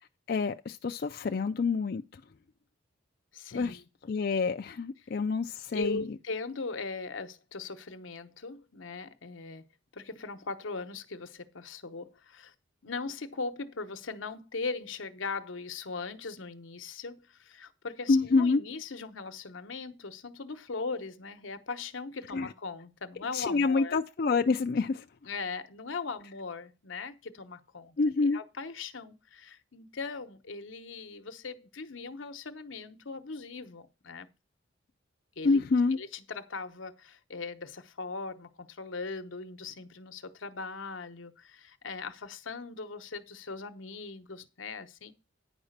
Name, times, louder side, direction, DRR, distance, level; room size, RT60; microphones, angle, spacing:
voice 1, 0.3-2.2 3.5-3.8 4.1-6.0 18.1-18.6 22.3-22.5 23.3-25.0 28.0-28.4 35.4-36.0, left 4 dB, 50° left, 0.4 m, -27 dB
voice 2, 3.3-3.8 5.0-5.1 5.7-9.6 9.9-12.5 12.8-24.0 25.3-28.0 28.2-34.3 35.4-35.6 35.9-45.1, left 4 dB, 85° left, 1.0 m, -39 dB
9.8 x 5.0 x 6.5 m
head